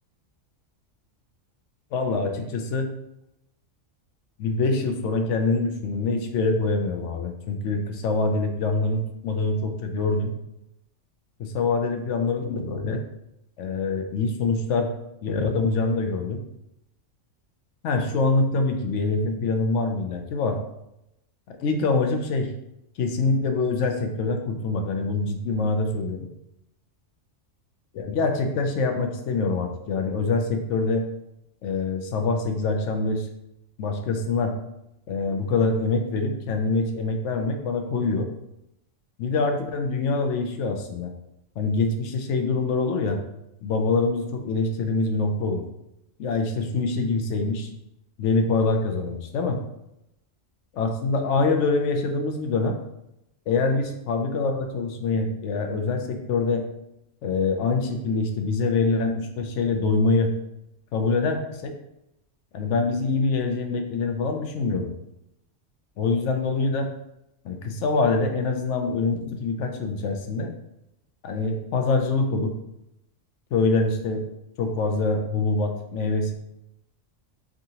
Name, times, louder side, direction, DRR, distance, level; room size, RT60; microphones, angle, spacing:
voice 1, 1.9-2.9 4.4-10.3 11.4-13.0 13.6-14.9 15.2-16.4 17.8-20.6 21.5-22.5 23.0-26.2 27.9-31.0 31.6-33.3 33.8-34.5 35.1-38.3 39.2-41.1 41.6-43.2 43.6-45.6 46.2-47.7 48.2-49.6 50.8-52.7 53.5-56.6 57.2-60.3 60.9-61.7 62.5-64.9 66.0-66.9 67.4-70.5 71.2-72.5 73.5-74.2 74.6-76.3, left 3 dB, 75° left, 5 dB, 0.9 m, -25 dB
3.7 x 3.6 x 2.8 m, 0.85 s
omnidirectional pair, 1.3 m